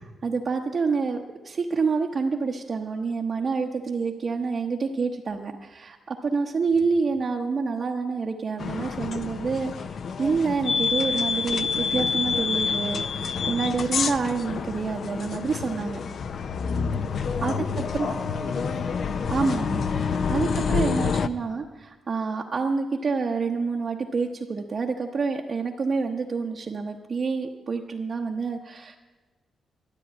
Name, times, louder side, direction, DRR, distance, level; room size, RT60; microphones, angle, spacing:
voice 1, 0.2-16.0 17.1-17.5 17.9-18.1 19.3-29.0, right 4 dB, 35° right, 0 dB, 0.8 m, -28 dB
sound 1, 8.6-21.3, left 6 dB, 45° left, 0.5 m, -28 dB
voice 2, 16.8-17.1 17.5-19.3, left 3 dB, 75° left, 2 dB, 2.4 m, -36 dB
13.0 x 9.7 x 8.5 m, 1.3 s
wide cardioid pair, 175°, 0 cm